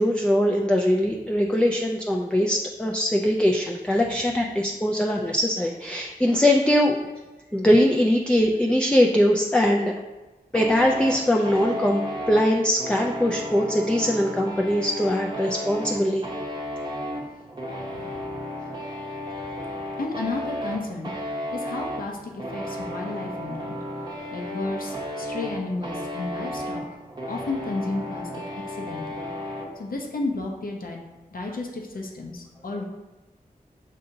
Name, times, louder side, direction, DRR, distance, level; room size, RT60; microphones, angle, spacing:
voice 1, 0.0-7.0 7.5-10.0 10.5-16.2, equal, 5° left, 0 dB, 0.3 m, -21 dB
sound 1, 10.5-29.7, equal, 25° right, 0.7 m, -33 dB
voice 2, 17.9-18.3 20.0-21.1 21.5-23.8 24.3-26.9 27.3-29.3 29.8-31.0 31.3-32.8, left 2 dB, 65° left, 0 dB, 0.7 m, -32 dB
6.6 x 2.7 x 2.6 m, 1.1 s
wide cardioid pair, 75°, 16 cm